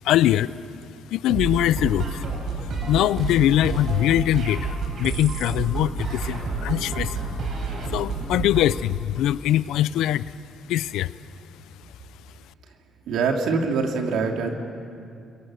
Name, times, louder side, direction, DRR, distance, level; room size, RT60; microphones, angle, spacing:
voice 1, 0.0-0.5 1.1-2.2 2.6-7.4 7.9-10.3 10.7-11.1, left 13 dB, 90° left, 18 dB, 0.5 m, -22 dB
sound 1, 1.3-8.7, right 3 dB, 65° right, 4.2 m, -29 dB
voice 2, 13.1-14.5, right 4 dB, 85° right, 2 dB, 2.8 m, -24 dB
27.5 x 22.0 x 6.4 m, 2.4 s
cardioid pair, 90°, 0 cm